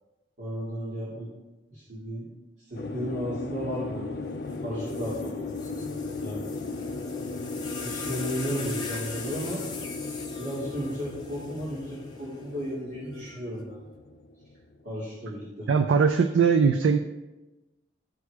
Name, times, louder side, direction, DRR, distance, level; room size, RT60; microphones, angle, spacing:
voice 1, 0.4-1.3 1.7-2.3 2.7-4.1 4.6-5.4 6.2-6.5 7.8-9.6 10.4-13.8 14.8-15.7, equal, 70° right, -9 dB, 2.2 m, -34 dB
sound 1, 2.7-15.0, left 3 dB, 55° left, 0.4 m, -36 dB
sound 2, 4.5-4.6 4.8-12.2 13.1-13.6, left 4 dB, 20° left, 0.7 m, -41 dB
voice 2, 15.7-17.0, right 5 dB, 90° right, 7 dB, 0.4 m, -20 dB
12.5 x 4.8 x 2.3 m, 1.1 s
head